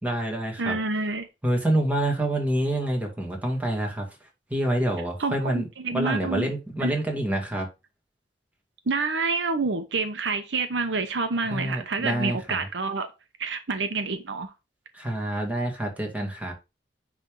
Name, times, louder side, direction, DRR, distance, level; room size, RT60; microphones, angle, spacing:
voice 1, 0.0-0.8 1.4-4.1 4.5-7.7 11.5-12.6 14.9-16.5, right 1 dB, 10° right, 2.1 m, -27 dB
voice 2, 0.6-1.3 5.2-6.5 6.8-6.9 8.9-13.1 13.4-14.5, right 4 dB, 90° right, 1.0 m, -28 dB
9.8 x 3.5 x 3.8 m
head